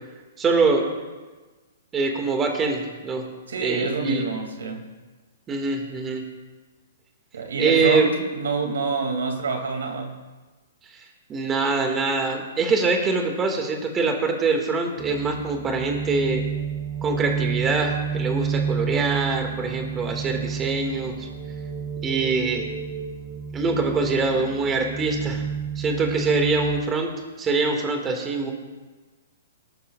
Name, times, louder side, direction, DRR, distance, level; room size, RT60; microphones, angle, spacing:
voice 1, 0.4-0.8 1.9-3.2 3.6-4.3 5.5-6.2 7.6-8.1 11.3-16.4 17.0-21.3 22.0-22.6 23.5-25.4 25.8-27.1 27.4-28.5, right 4 dB, 20° right, 3 dB, 1.9 m, -24 dB
voice 2, 3.5-4.9 7.3-10.2, right 4 dB, 85° right, 3 dB, 2.5 m, -27 dB
sound 1, 15.0-26.8, right 6 dB, 60° right, 2.8 m, -30 dB
18.5 x 13.0 x 2.4 m, 1.3 s
hypercardioid pair, 135°, 0 cm